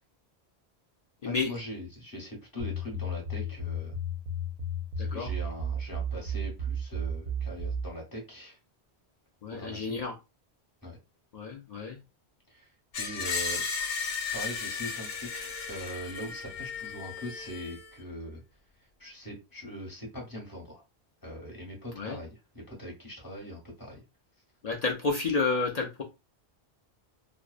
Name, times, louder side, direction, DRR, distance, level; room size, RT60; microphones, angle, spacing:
voice 1, 1.2-4.0 5.1-8.6 9.5-10.0 10.8-11.0 12.5-12.7 13.0-13.7 14.3-18.4 18.8-20.8 21.2-24.0, equal, 20° left, -2 dB, 0.8 m, -41 dB
sound 1, 2.6-7.9, right 1 dB, 55° right, 0.7 m, -33 dB
voice 2, 5.0-5.3 9.4-10.1 11.3-12.0 22.0-22.2 24.6-26.0, left 4 dB, 55° left, 0 dB, 0.4 m, -30 dB
Screech, 12.9-17.9, left 5 dB, 75° left, 0.9 m, -35 dB
2.6 x 2.0 x 2.3 m, 0.26 s
omnidirectional pair, 1.1 m